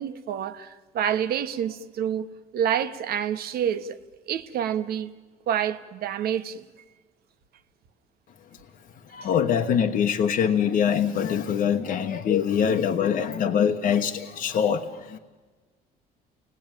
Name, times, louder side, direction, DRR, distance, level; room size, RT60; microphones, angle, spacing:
voice 1, 0.0-4.0 4.3-5.1 5.5-6.6, right 9 dB, 65° right, 1.3 m, -28 dB
voice 2, 9.1-15.2, left 8 dB, 55° left, 1.2 m, -24 dB
30.0 x 19.5 x 9.1 m
cardioid pair, 110°, 17 cm